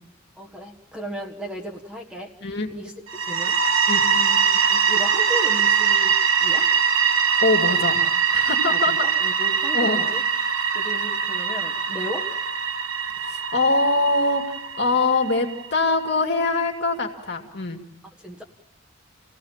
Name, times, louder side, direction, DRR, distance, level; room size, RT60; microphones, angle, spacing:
voice 1, 0.4-2.3 2.7-2.9 3.3-3.8 4.1-6.1 6.4-6.7 8.7-10.2 10.7-12.3 18.2-18.4, equal, 5° right, 1 dB, 1.5 m, -35 dB
sound 1, 3.1-15.8, right 6 dB, 80° right, 1.3 m, -22 dB
voice 2, 7.4-8.0 8.3-8.9 9.7-10.0 13.2-14.4 14.8-17.8, left 3 dB, 50° left, 3 dB, 2.5 m, -23 dB
27.5 x 17.5 x 7.3 m, 0.84 s
head